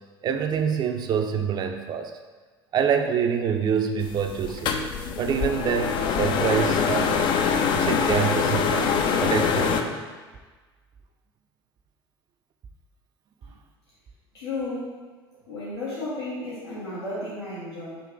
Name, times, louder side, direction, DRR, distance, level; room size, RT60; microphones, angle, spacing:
voice 1, 0.2-2.1 2.7-4.8 5.2-7.3 7.7-10.0, right 7 dB, 35° right, 6 dB, 0.4 m, -26 dB
sound 1, 4.0-9.8, left 6 dB, 35° left, 0.4 m, -24 dB
voice 2, 14.3-15.0 15.5-18.0, left 2 dB, 75° left, -9 dB, 1.0 m, -33 dB
3.8 x 2.6 x 4.6 m, 1.4 s
figure-of-eight pair, 70°, 13 cm